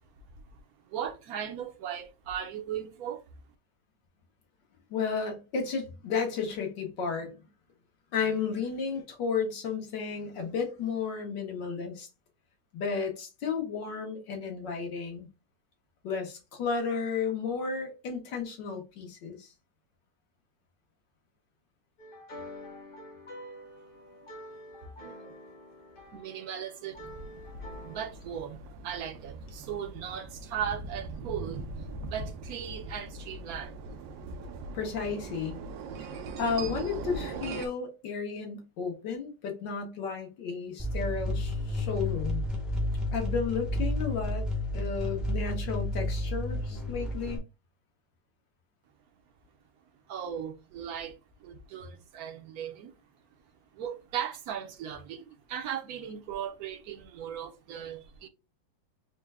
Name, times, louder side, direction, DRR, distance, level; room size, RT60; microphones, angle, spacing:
voice 1, 0.9-3.2 25.0-25.3 26.1-27.0 27.8-33.8 50.1-52.9 53.7-58.3, right 9 dB, 65° right, 1.0 m, -38 dB
voice 2, 4.9-7.3 8.1-12.1 12.7-15.3 16.0-19.5 34.7-35.6 36.4-42.4 43.1-44.5 44.7-47.4, left 5 dB, 70° left, 1.7 m, -33 dB
sound 1, 22.0-28.1, left 1 dB, 35° left, 1.0 m, -47 dB
sound 2, 26.9-37.7, right 3 dB, 85° right, 1.3 m, -41 dB
sound 3, 40.8-47.4, left 1 dB, ahead, 0.4 m, -31 dB
4.4 x 2.1 x 3.4 m
omnidirectional pair, 2.0 m